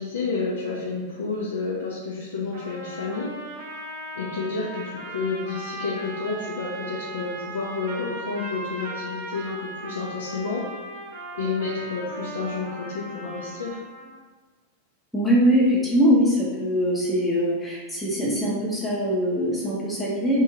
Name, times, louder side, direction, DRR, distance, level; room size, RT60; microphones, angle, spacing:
voice 1, 0.0-3.4 4.1-10.7 11.3-13.8, left 4 dB, 65° left, -5 dB, 0.4 m, -30 dB
sound 1, 2.5-14.2, right 2 dB, 60° right, 0.6 m, -37 dB
voice 2, 15.1-20.4, equal, ahead, -7 dB, 0.6 m, -22 dB
2.6 x 2.3 x 2.9 m, 1.3 s
figure-of-eight pair, 90°, 0 cm